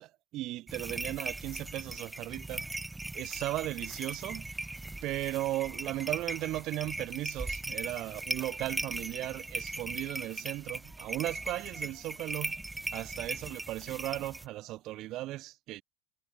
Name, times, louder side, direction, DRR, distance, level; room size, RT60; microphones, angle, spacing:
voice 1, 0.0-2.7 3.1-4.5 5.0-12.6 12.9-15.8, right 16 dB, 50° right, 1.7 m, -36 dB
sound 1, 0.7-14.5, right 2 dB, 10° right, 4.5 m, -39 dB
figure-of-eight pair, 75°, 0 cm